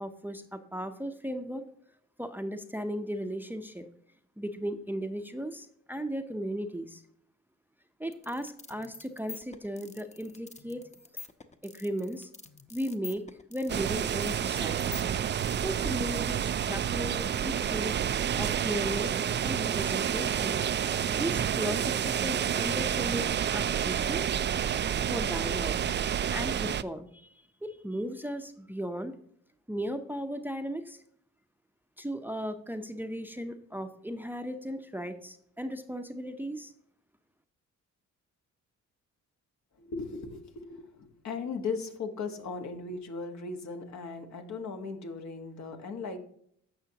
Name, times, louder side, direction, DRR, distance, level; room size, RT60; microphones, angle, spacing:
voice 1, 0.0-1.7 2.2-3.9 4.4-7.0 8.0-10.8 11.6-12.3 12.7-15.0 15.6-18.0 18.3-20.6 21.1-24.2 25.1-25.7 26.3-29.2 29.7-31.0 32.0-36.7, equal, 5° right, 8 dB, 0.7 m, -36 dB
sound 1, 8.1-15.6, left 5 dB, 20° left, 0.9 m, -47 dB
sound 2, 13.7-26.8, right 9 dB, 35° right, 0.4 m, -29 dB
voice 2, 39.8-46.2, left 4 dB, 65° left, 5 dB, 1.5 m, -37 dB
15.5 x 5.6 x 2.9 m, 0.67 s
cardioid pair, 75°, 31 cm